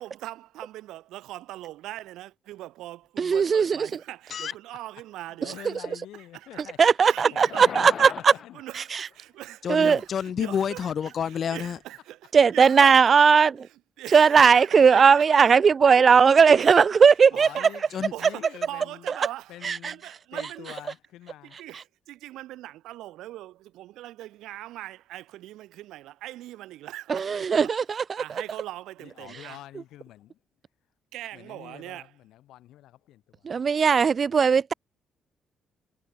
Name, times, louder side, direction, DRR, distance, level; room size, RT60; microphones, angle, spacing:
voice 1, 0.0-10.0 10.4-10.8 11.5-15.5 16.5-16.8 17.3-19.6 19.8-20.8 21.4-29.6 31.1-32.1, right 15 dB, 90° right, 4.4 m, -41 dB
voice 2, 3.2-3.9 6.8-8.3 8.9-9.0 9.7-10.0 12.3-13.5 14.1-17.5 19.6-19.9 27.1-28.2 33.4-34.7, right 6 dB, 45° right, 0.6 m, -18 dB
voice 3, 5.3-8.1 8.4-8.6 16.3-16.4 17.3-17.9 18.2-19.1 19.5-20.0 20.3-21.6 29.0-30.4 31.3-33.5, left 14 dB, 85° left, 3.8 m, -46 dB
voice 4, 7.2-8.5 9.6-11.8 17.9-18.1, left 8 dB, 55° left, 4.8 m, -30 dB
cardioid pair, 90°, 0 cm